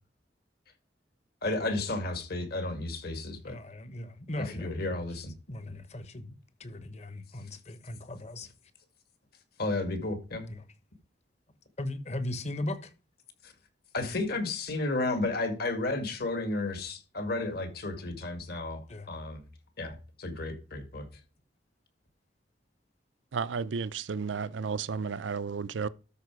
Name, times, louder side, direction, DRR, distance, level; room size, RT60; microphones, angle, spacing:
voice 1, 1.4-3.6 4.5-5.3 5.7-5.8 9.6-10.5 13.4-13.5 13.9-19.4 19.8-21.1, left 2 dB, 60° left, 2.1 m, -32 dB
voice 2, 3.4-8.5 10.5-10.6 11.8-12.9 18.9-19.1, left 1 dB, 40° left, 1.2 m, -38 dB
voice 3, 23.3-25.9, right 5 dB, 85° right, 0.5 m, -33 dB
12.5 x 4.9 x 4.7 m
head